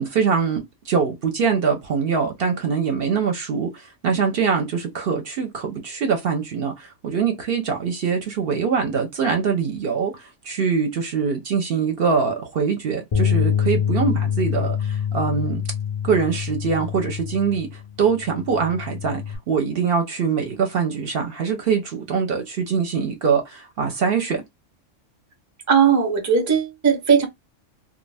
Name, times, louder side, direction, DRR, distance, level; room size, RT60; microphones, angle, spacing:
voice 1, 0.0-15.6 16.0-24.4, right 6 dB, 60° right, 0.7 m, -23 dB
Bass guitar, 13.1-19.4, left 8 dB, 50° left, 0.4 m, -25 dB
voice 2, 25.7-27.3, right 6 dB, 20° right, 0.4 m, -18 dB
2.4 x 2.1 x 3.2 m
omnidirectional pair, 1.3 m